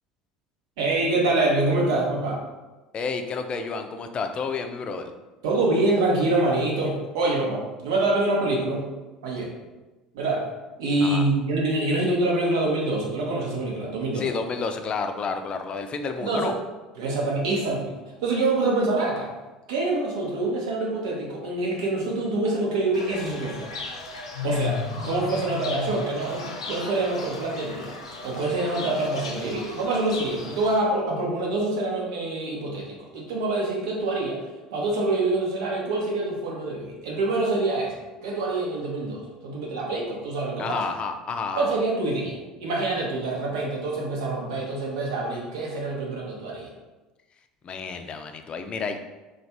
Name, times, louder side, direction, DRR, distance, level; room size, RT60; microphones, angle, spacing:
voice 1, 0.8-2.4 5.4-8.9 9.2-9.5 10.1-10.5 10.8-14.3 16.2-16.5 17.0-17.9 18.2-19.3 19.7-23.7 24.4-27.9 28.2-34.4 34.7-40.8 41.5-46.7, right 2 dB, 70° right, -2 dB, 0.9 m, -26 dB
voice 2, 2.9-5.1 11.0-11.3 14.1-16.5 40.6-41.8 47.6-49.0, left 5 dB, 35° left, 6 dB, 0.4 m, -30 dB
Fowl / Bird, 22.9-30.8, left 4 dB, 80° left, 0.6 m, -35 dB
3.2 x 2.4 x 4.2 m, 1.1 s
figure-of-eight pair, 65°, 3 cm